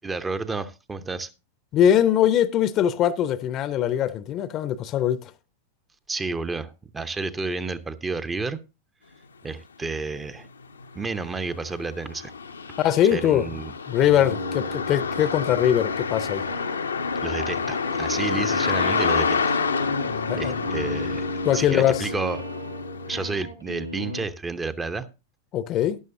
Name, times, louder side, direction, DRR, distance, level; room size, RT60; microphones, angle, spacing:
voice 1, 0.0-1.3 6.1-8.6 9.4-10.5 10.9-12.3 13.1-13.7 17.2-19.6 20.4-22.4 23.1-25.1, right 3 dB, 15° right, 0.7 m, -31 dB
voice 2, 1.7-5.3 12.8-13.5 13.9-16.4 20.3-20.6 21.4-22.1 25.5-26.0, left 10 dB, 35° left, 0.7 m, -22 dB
sound 1, 9.8-9.9 10.4-23.2, left 5 dB, 75° left, 0.8 m, -29 dB
sound 2, 13.8-24.2, left 1 dB, 85° right, 1.2 m, -34 dB
13.0 x 11.0 x 2.6 m
figure-of-eight pair, 90°, 0 cm